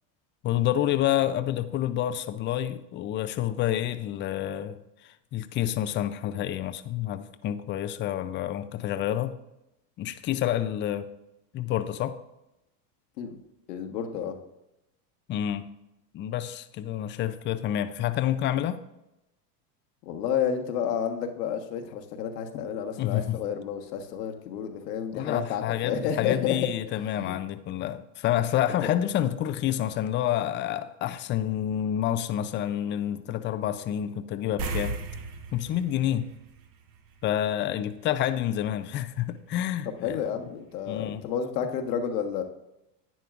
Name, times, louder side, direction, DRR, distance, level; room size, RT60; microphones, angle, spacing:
voice 1, 0.4-9.4 10.0-11.1 11.5-12.2 15.3-15.7 16.1-18.8 23.0-23.4 25.1-35.0 35.5-36.3 37.2-40.2 40.9-41.2, left 11 dB, 25° left, 11 dB, 0.4 m, -28 dB
voice 2, 13.7-14.4 20.1-26.6 27.2-27.4 40.0-42.4, left 8 dB, 75° left, 4 dB, 1.4 m, -30 dB
sound 1, 34.6-37.4 37.7-37.9 40.7-40.8 41.2-41.3, right 4 dB, 45° right, 1.2 m, -36 dB
11.0 x 9.3 x 2.5 m, 0.92 s
hypercardioid pair, 110°, 48 cm